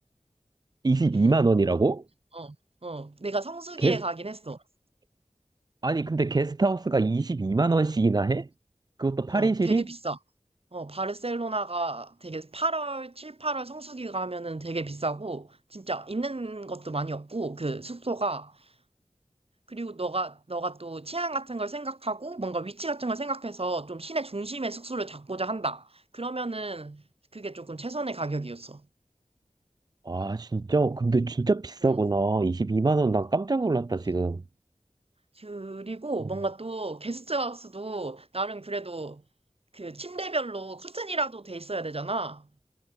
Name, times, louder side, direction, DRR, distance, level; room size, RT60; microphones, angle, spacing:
voice 1, 0.8-2.0 3.8-4.0 5.8-8.5 9.0-9.9 30.1-34.4, right 3 dB, 35° right, 0.3 m, -24 dB
voice 2, 2.8-4.6 9.3-10.2 10.7-18.6 19.7-27.0 27.3-28.8 31.8-32.0 35.4-39.2 39.7-42.5, right 2 dB, 50° right, 1.2 m, -33 dB
wide cardioid pair, 45°, 12 cm